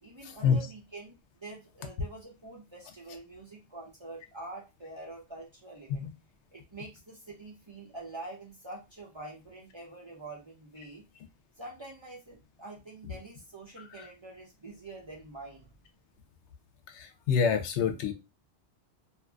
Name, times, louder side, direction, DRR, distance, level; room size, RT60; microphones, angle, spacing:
voice 1, 0.0-6.1 6.5-11.0 11.6-15.7, right 2 dB, 30° right, -3 dB, 0.6 m, -46 dB
voice 2, 16.9-18.1, left 6 dB, 90° left, 6 dB, 0.9 m, -26 dB
2.7 x 2.5 x 2.2 m, 0.26 s
omnidirectional pair, 1.1 m